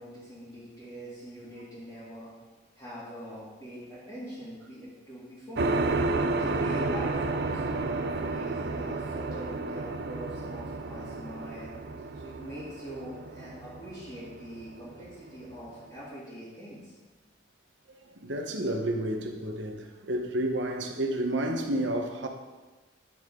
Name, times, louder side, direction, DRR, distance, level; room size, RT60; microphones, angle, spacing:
voice 1, 0.0-2.3 2.7-5.7 6.3-11.7 12.2-16.9, equal, 20° left, -11 dB, 2.4 m, -43 dB
sound 1, 5.6-15.7, right 3 dB, 55° right, 0.5 m, -31 dB
voice 2, 17.9-22.3, right 1 dB, 75° right, 4 dB, 1.0 m, -31 dB
9.9 x 6.7 x 3.7 m, 1.2 s
head